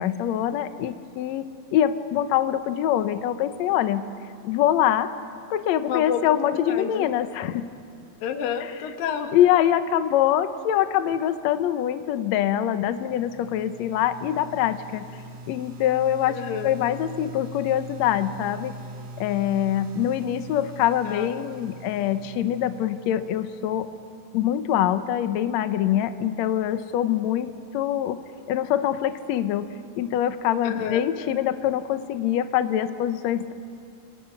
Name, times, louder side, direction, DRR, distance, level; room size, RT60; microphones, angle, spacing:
voice 1, 0.0-4.0 4.4-5.1 5.5-7.7 9.3-15.1 15.5-18.7 19.2-23.9 24.3-28.2 28.5-29.7 30.0-33.5, left 11 dB, 90° left, 10 dB, 1.5 m, -24 dB
voice 2, 5.9-7.1 8.2-9.4 16.3-16.7 21.0-21.3 30.6-31.0, left 8 dB, 70° left, 5 dB, 3.1 m, -30 dB
sound 1, 12.5-24.2, right 2 dB, 60° right, 2.1 m, -42 dB
30.0 x 29.0 x 5.8 m, 2.3 s
omnidirectional pair, 4.4 m